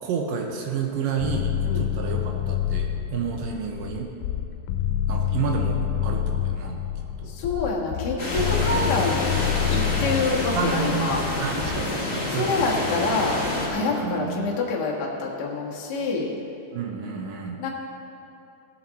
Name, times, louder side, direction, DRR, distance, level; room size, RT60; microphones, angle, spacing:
voice 1, 0.0-4.1 5.1-6.8 7.2-7.3 10.5-12.6 13.9-14.5 16.7-17.6, right 6 dB, 75° right, 2 dB, 2.3 m, -30 dB
sound 1, 1.2-11.8, left 10 dB, 90° left, 2.5 m, -28 dB
voice 2, 7.2-9.4 9.7-11.2 12.3-16.3 17.6-17.7, left 3 dB, 70° left, -4 dB, 1.0 m, -26 dB
sound 2, 8.2-13.7, left 1 dB, 25° left, 1.1 m, -28 dB
16.5 x 7.3 x 4.1 m, 2.8 s
omnidirectional pair, 4.3 m